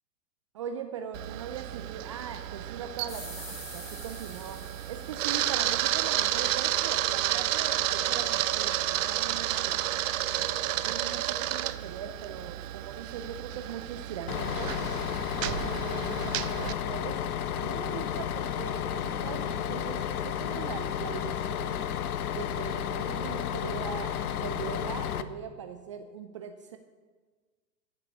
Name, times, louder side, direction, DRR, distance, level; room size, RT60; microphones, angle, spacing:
voice 1, 0.5-9.9 10.8-14.7 15.3-17.2 17.6-21.8 22.3-26.8, right 7 dB, 25° right, 7 dB, 0.3 m, -40 dB
Camera, 1.1-16.7, right 13 dB, 55° right, 0.7 m, -31 dB
sound 1, 3.1-6.4, left 2 dB, 15° left, 4.3 m, -46 dB
Bus, 14.3-25.2, left 9 dB, 65° left, 0.9 m, -32 dB
14.0 x 6.7 x 8.3 m, 1.4 s
figure-of-eight pair, 100°, 48 cm